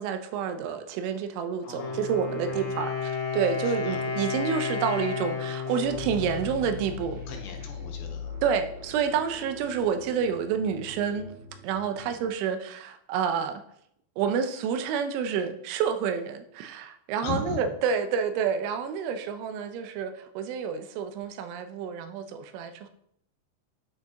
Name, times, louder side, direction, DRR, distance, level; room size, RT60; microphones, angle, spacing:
voice 1, 0.0-2.9 3.3-7.2 8.4-11.3 11.6-13.6 14.2-22.9, right 7 dB, 85° right, 8 dB, 3.0 m, -29 dB
voice 2, 1.6-2.1 2.5-2.9 3.6-4.1 7.3-8.3 12.0-12.2 17.2-17.6, left 5 dB, 80° left, 3 dB, 2.8 m, -38 dB
Wind instrument woodwind instrument, 1.6-7.4, left 4 dB, 50° left, 2.3 m, -32 dB
sound 1, 5.6-12.3, left 4 dB, 55° right, 4.0 m, -41 dB
9.1 x 5.1 x 3.7 m, 0.71 s
omnidirectional pair, 5.5 m